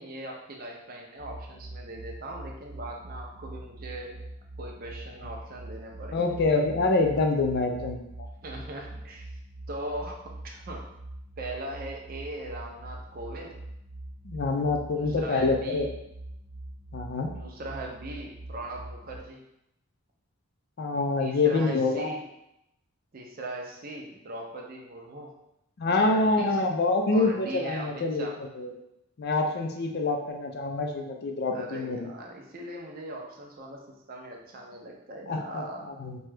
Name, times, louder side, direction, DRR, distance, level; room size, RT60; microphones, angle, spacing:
voice 1, 0.0-4.2 4.6-6.3 8.4-9.4 9.7-10.8 11.4-13.6 14.9-15.9 17.3-19.4 21.2-22.2 23.1-25.4 25.9-26.6 27.1-28.4 31.5-35.8, right 1 dB, 40° right, 0 dB, 0.4 m, -40 dB
sound 1, 1.2-19.2, right 1 dB, 85° right, 0.9 m, -43 dB
voice 2, 6.1-8.0 14.2-15.9 16.9-17.3 20.8-22.1 25.8-28.7 29.2-32.1 35.3-36.2, left 3 dB, 45° left, 3 dB, 0.4 m, -26 dB
2.7 x 2.2 x 3.2 m, 0.83 s
head